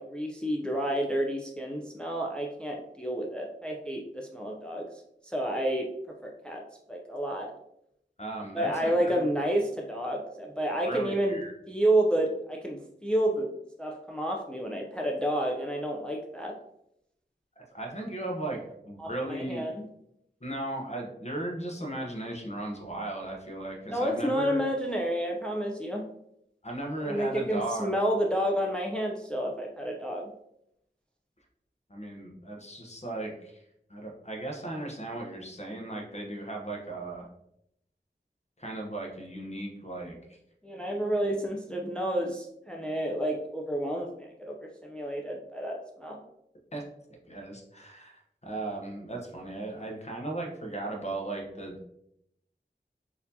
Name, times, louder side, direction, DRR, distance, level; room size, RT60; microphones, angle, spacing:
voice 1, 0.0-4.8 5.2-5.9 6.2-6.6 6.9-7.5 8.5-11.4 11.7-13.5 13.8-16.5 19.0-19.8 23.9-26.0 27.0-30.2 40.6-46.2, right 1 dB, 5° left, 1 dB, 0.4 m, -30 dB
voice 2, 8.2-9.3 10.8-11.5 17.6-19.6 20.4-24.6 26.6-27.9 31.9-33.6 33.9-37.3 38.6-40.2 46.7-46.8 47.3-51.9, right 2 dB, 35° left, 1 dB, 0.8 m, -36 dB
4.1 x 2.7 x 2.7 m, 0.78 s
wide cardioid pair, 50°, 19 cm